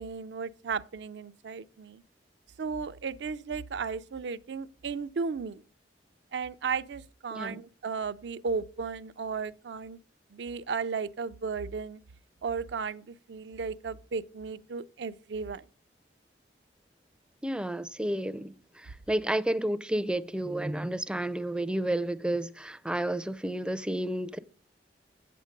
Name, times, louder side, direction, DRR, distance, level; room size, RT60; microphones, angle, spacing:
voice 1, 0.0-2.0 2.6-5.6 6.3-10.0 10.3-12.0 12.4-15.6, right 5 dB, 65° right, 0.4 m, -35 dB
voice 2, 17.4-24.4, right 1 dB, 5° right, 0.4 m, -31 dB
8.1 x 7.6 x 5.2 m
head